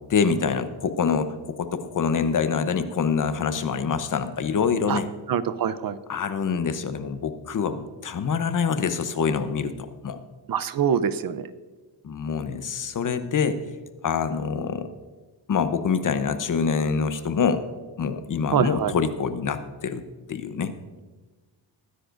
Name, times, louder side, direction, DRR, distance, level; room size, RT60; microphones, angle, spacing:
voice 1, 0.1-5.1 6.1-10.2 12.0-13.6 14.0-14.9 15.5-17.6 18.0-20.0 20.3-20.7, left 6 dB, 45° left, 10 dB, 0.9 m, -25 dB
voice 2, 5.3-6.0 10.5-11.5 18.5-18.9, right 8 dB, 50° right, 14 dB, 0.7 m, -24 dB
21.0 x 9.8 x 2.6 m, 1.2 s
cardioid pair, 120°, 44 cm